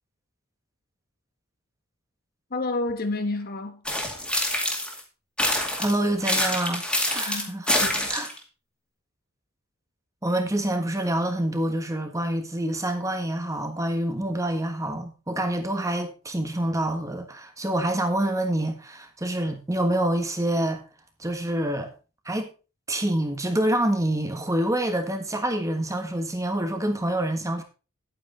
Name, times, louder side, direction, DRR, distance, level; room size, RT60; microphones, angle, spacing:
voice 1, 2.5-3.8 7.1-7.5 7.8-8.1, left 2 dB, 45° left, 1.3 m, -30 dB
sound 1, 3.9-5.0 5.4-8.4, left 1 dB, 5° left, 2.2 m, -26 dB
voice 2, 5.8-7.8 8.1-8.3 10.2-20.8 21.2-21.9 22.2-22.5 22.9-27.6, right 1 dB, 15° right, 1.5 m, -27 dB
9.9 x 9.2 x 4.0 m
head